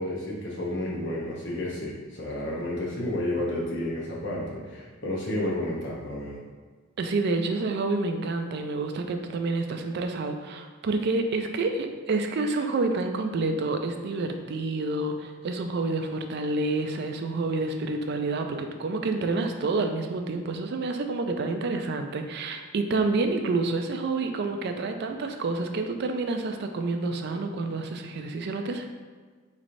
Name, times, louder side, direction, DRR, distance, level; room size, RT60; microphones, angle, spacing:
voice 1, 0.0-6.4, left 1 dB, 55° left, -4 dB, 0.8 m, -31 dB
voice 2, 7.0-28.9, right 3 dB, 50° right, 5 dB, 0.3 m, -28 dB
4.0 x 3.2 x 2.6 m, 1.5 s
head